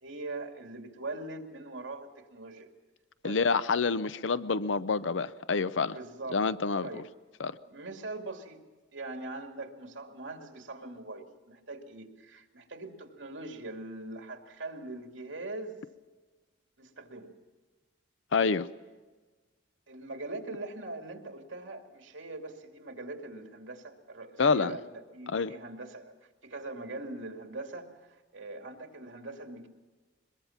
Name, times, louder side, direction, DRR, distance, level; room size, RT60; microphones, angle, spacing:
voice 1, 0.0-2.7 3.2-3.4 5.9-6.4 6.8-7.1 7.7-8.6 8.9-15.8 16.8-17.3 18.4-18.6 19.9-24.8 25.1-29.7, right 2 dB, 80° right, 2.5 m, -42 dB
voice 2, 3.2-6.0 6.3-7.0 7.4-7.6 18.3-18.7 24.4-24.8 25.3-25.5, left 4 dB, 75° left, 0.6 m, -27 dB
23.0 x 22.0 x 5.9 m
head